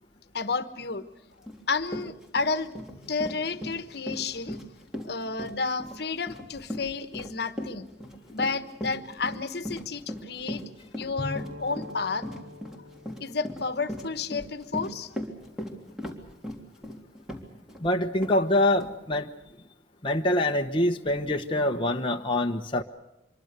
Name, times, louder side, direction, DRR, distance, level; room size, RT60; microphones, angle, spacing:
voice 1, 0.3-1.0 1.7-4.6 5.0-7.9 8.3-10.6 10.9-12.3 13.2-15.1, left 4 dB, 60° left, 11 dB, 1.3 m, -31 dB
Run, 1.5-1.6 1.9-17.8 18.2-18.4 18.8-18.9, left 1 dB, 5° right, 3.3 m, -38 dB
Bowed string instrument, 11.2-14.9, left 2 dB, 70° right, 3.0 m, -42 dB
voice 2, 17.8-19.3 20.0-22.8, left 1 dB, 30° left, 3 dB, 1.0 m, -25 dB
26.0 x 23.0 x 6.7 m, 0.96 s
head